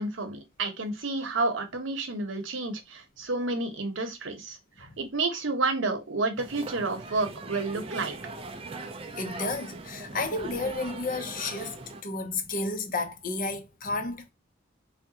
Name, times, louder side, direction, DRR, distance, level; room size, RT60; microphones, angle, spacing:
voice 1, 0.0-8.1, right 3 dB, 85° right, 0.9 m, -30 dB
sound 1, 6.4-12.0, right 3 dB, 30° right, 0.4 m, -40 dB
voice 2, 9.2-11.8 12.0-14.3, left 3 dB, 45° left, 0.6 m, -32 dB
3.5 x 2.2 x 2.7 m
head